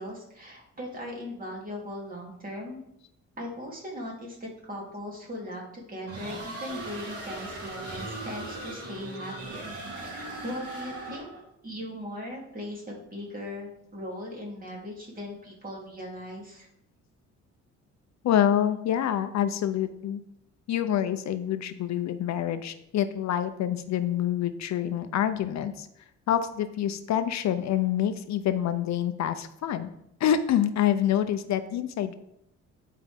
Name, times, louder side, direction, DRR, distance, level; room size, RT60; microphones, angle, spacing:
voice 1, 0.0-2.8 3.4-9.7 10.0-11.3 11.6-16.7, left 1 dB, 30° right, -2 dB, 3.0 m, -39 dB
sound 1, 6.1-11.4, right 2 dB, 50° right, 3.1 m, -38 dB
voice 2, 18.2-20.2 20.7-25.9 26.3-29.9 30.2-32.1, left 10 dB, 65° left, 10 dB, 0.6 m, -26 dB
10.5 x 4.7 x 3.6 m, 0.77 s
cardioid pair, 90°, 30 cm